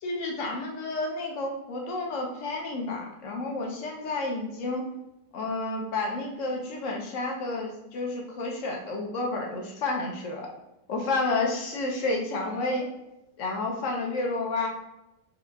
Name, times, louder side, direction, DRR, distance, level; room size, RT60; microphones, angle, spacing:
voice 1, 0.0-4.9 5.3-10.5 10.9-12.9 13.4-14.7, left 2 dB, 65° left, 0 dB, 0.7 m, -30 dB
5.4 x 2.4 x 2.2 m, 0.94 s
omnidirectional pair, 1.9 m